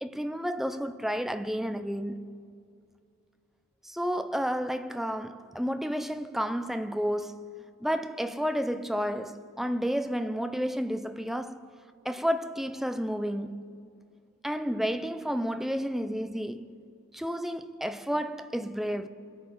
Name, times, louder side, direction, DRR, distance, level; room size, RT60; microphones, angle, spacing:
voice 1, 0.0-2.4 3.8-11.6 12.0-13.6 14.4-16.8 17.1-19.1, equal, ahead, 0.4 m, -31 dB
23.5 x 8.6 x 5.6 m
head